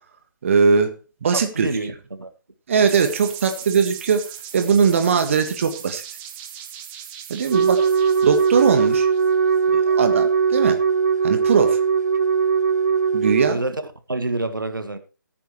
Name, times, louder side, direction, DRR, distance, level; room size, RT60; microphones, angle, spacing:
voice 1, 0.4-0.9 1.2-1.7 2.7-4.2 4.5-6.0 7.3-7.9 8.2-9.1 9.7-10.8 11.2-11.8 13.1-13.6, right 5 dB, 40° right, 8 dB, 1.6 m, -20 dB
voice 2, 1.3-2.3 13.5-13.8 14.1-15.0, right 2 dB, 75° right, 10 dB, 1.6 m, -27 dB
sound 1, 2.9-9.6, right 10 dB, 15° right, 1.1 m, -38 dB
Wind instrument woodwind instrument, 7.5-13.6, right 6 dB, 55° right, 1.0 m, -19 dB
16.0 x 9.6 x 3.2 m, 0.32 s
figure-of-eight pair, 145°, 11 cm